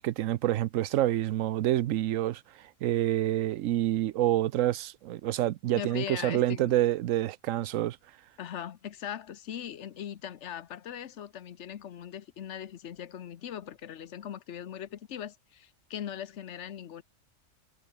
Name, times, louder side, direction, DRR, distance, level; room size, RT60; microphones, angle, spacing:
voice 1, 0.0-8.0, right 13 dB, 90° right, 1.0 m, -27 dB
voice 2, 5.7-6.8 8.4-17.0, left 9 dB, 65° left, 1.2 m, -40 dB
omnidirectional pair, 1.3 m